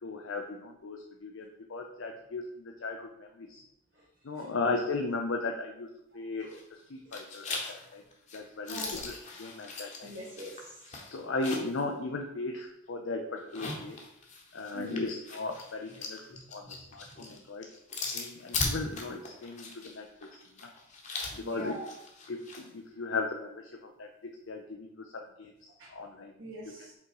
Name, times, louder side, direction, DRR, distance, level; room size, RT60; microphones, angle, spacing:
voice 1, 0.0-3.6 4.2-5.9 6.1-6.6 6.9-8.0 8.3-10.1 11.0-14.0 14.5-16.2 16.5-16.6 16.9-17.7 18.1-20.1 21.3-21.8 22.3-25.5 25.9-26.3, left 3 dB, 75° left, 2 dB, 0.6 m, -36 dB
sound 1, 6.4-6.8 7.1-11.8 12.2-12.3 13.4-22.6, left 3 dB, 40° left, 1.1 m, -39 dB
voice 2, 8.7-9.1 10.0-10.8 14.7-15.1 16.3-16.8 17.1-17.2 21.4-21.9 25.8-25.9 26.4-26.9, equal, 70° right, -8 dB, 1.8 m, -42 dB
5.6 x 3.8 x 4.7 m, 0.78 s
head